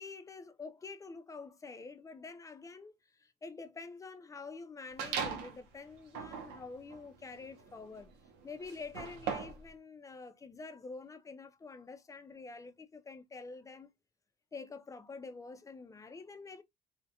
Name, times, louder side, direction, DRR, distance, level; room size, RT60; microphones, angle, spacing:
voice 1, 0.0-8.1 8.4-13.9 14.5-16.6, left 4 dB, 20° left, 0.4 m, -47 dB
sound 1, 5.0-5.6 6.1-9.7, right 6 dB, 90° right, 0.6 m, -40 dB
2.2 x 2.1 x 2.8 m
cardioid pair, 110°, 17 cm